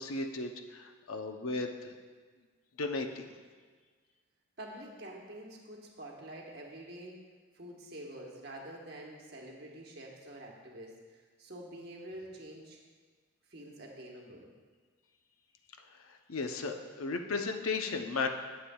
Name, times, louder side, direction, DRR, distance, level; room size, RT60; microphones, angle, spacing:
voice 1, 0.0-2.0 2.8-3.3 15.9-18.3, left 3 dB, 90° left, 5 dB, 0.7 m, -35 dB
voice 2, 4.6-7.2 7.5-12.8 13.5-14.5, right 1 dB, 50° right, -1 dB, 1.2 m, -47 dB
11.5 x 7.5 x 2.3 m, 1.5 s
head